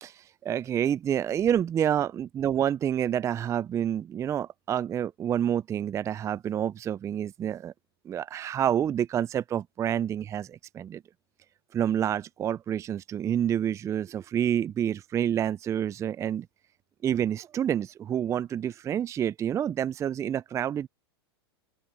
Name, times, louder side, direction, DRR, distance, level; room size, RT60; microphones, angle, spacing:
voice 1, 0.0-7.7 8.1-11.0 11.7-16.5 17.0-20.9, right 9 dB, 20° right, 0.4 m, -28 dB
open air
hypercardioid pair, 105°, 14 cm